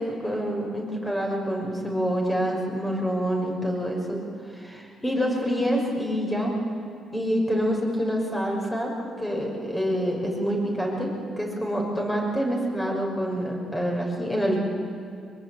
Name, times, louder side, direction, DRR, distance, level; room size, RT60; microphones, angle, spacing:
voice 1, 0.0-4.2 4.5-6.5 7.1-8.9 9.2-14.6, equal, 15° left, -1 dB, 6.3 m, -27 dB
22.5 x 21.5 x 8.9 m, 2.4 s
cardioid pair, 90°, 0 cm